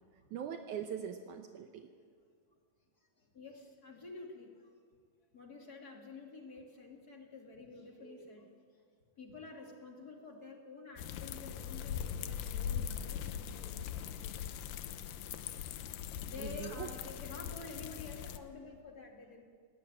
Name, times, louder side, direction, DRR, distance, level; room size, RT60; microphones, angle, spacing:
voice 1, 0.3-1.9 16.4-16.9, right 8 dB, 75° right, 6 dB, 2.2 m, -41 dB
voice 2, 3.0-4.7 5.3-8.5 9.2-14.6 16.2-19.4, left 3 dB, 30° left, 1 dB, 2.7 m, -50 dB
sound 1, 11.0-18.4, left 9 dB, 85° left, 2.5 m, -41 dB
Bass guitar, 12.5-18.7, left 13 dB, 10° left, 2.2 m, -62 dB
20.5 x 18.5 x 8.9 m, 2.1 s
omnidirectional pair, 3.8 m